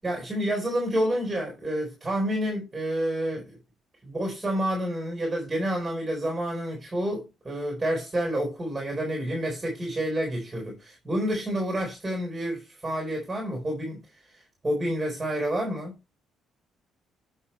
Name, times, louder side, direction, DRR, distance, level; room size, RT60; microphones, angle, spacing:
voice 1, 0.0-3.6 4.0-14.0 14.6-15.9, right 1 dB, 15° right, 4.0 m, -29 dB
8.8 x 5.7 x 4.3 m
cardioid pair, 165°, 0 cm